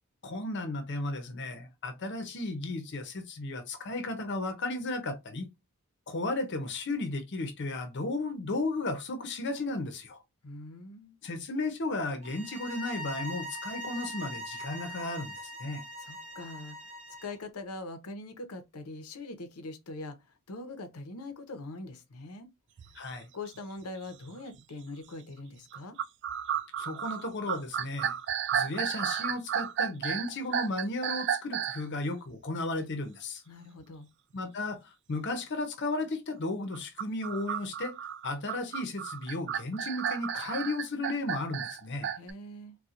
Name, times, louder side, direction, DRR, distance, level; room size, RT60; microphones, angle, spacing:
voice 1, 0.2-5.5 6.1-10.2 11.2-15.3 15.6-15.8 22.9-23.3 26.8-28.1 28.5-33.4 34.3-38.0 38.2-42.1, left 2 dB, 55° left, 0.7 m, -34 dB
voice 2, 10.4-11.2 16.0-16.8 17.2-22.5 23.3-26.0 33.5-34.1 42.2-42.8, left 2 dB, 85° left, 0.8 m, -42 dB
sound 1, 12.2-17.4, equal, 30° right, 1.1 m, -41 dB
sound 2, 22.8-23.0 23.5-23.6 24.3-24.6 25.7-31.8 36.7-42.3, right 9 dB, 55° right, 0.3 m, -33 dB
4.2 x 2.2 x 2.4 m
head